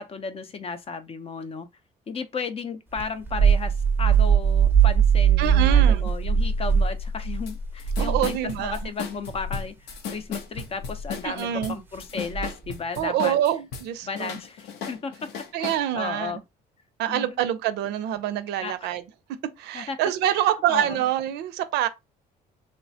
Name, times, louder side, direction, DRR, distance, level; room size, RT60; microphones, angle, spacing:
voice 1, 0.0-1.7 2.1-13.3 14.0-15.3 15.6-16.4 17.1-17.4 18.6-18.9 19.7-20.0 20.3-20.4 20.7-21.0, left 4 dB, 35° left, 0.5 m, -34 dB
sound 1, 3.0-8.8 9.3-9.6 10.8-11.1 12.3-12.7, right 7 dB, 10° right, 0.6 m, -21 dB
voice 2, 5.4-6.1 8.0-8.9 11.2-11.8 13.0-14.4 15.5-16.4 17.0-19.0 19.6-21.9, right 11 dB, 85° right, 0.5 m, -26 dB
sound 2, 7.5-7.6 7.8-13.9 14.1-15.8, left 6 dB, 80° left, 0.7 m, -36 dB
3.2 x 2.1 x 2.7 m
cardioid pair, 110°, 17 cm